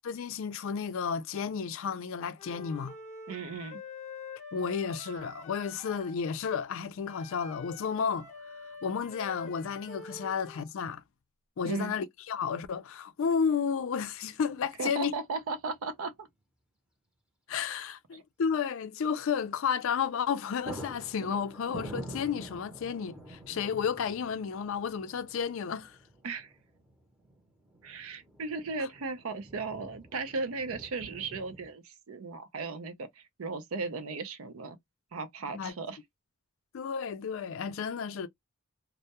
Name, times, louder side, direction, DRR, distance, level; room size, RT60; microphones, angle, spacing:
voice 1, 0.0-2.9 4.5-8.3 8.8-11.0 11.6-15.1 17.5-26.0 28.8-28.9 35.5-35.7 36.7-38.3, left 6 dB, 65° left, 0.4 m, -32 dB
Wind instrument woodwind instrument, 2.4-6.2 7.0-10.7, left 4 dB, 30° left, 0.7 m, -46 dB
voice 2, 3.3-3.8 11.6-11.9 14.8-16.3 18.1-18.2 26.2-26.5 27.8-34.8 35.1-36.0, right 4 dB, 75° right, 0.5 m, -36 dB
sound 1, 13.7-13.8 15.4-15.8 16.1-16.2 19.9-20.1 20.3-31.7, right 1 dB, 5° right, 0.6 m, -47 dB
2.2 x 2.0 x 2.8 m
head